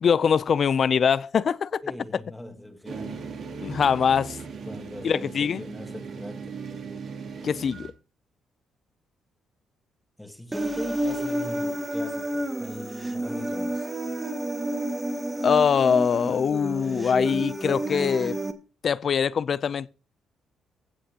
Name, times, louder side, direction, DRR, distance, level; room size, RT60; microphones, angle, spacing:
voice 1, 0.0-1.8 3.6-4.4 5.0-5.6 7.4-7.9 15.4-18.4 18.8-19.9, left 7 dB, 50° left, 0.4 m, -23 dB
voice 2, 1.8-3.4 4.7-6.6 10.2-13.9, left 1 dB, 5° left, 1.5 m, -40 dB
sound 1, 2.8-7.9, right 5 dB, 65° right, 2.9 m, -38 dB
Human voice, 10.5-18.5, right 1 dB, 15° right, 1.5 m, -30 dB
16.0 x 7.7 x 2.9 m
cardioid pair, 90°, 0 cm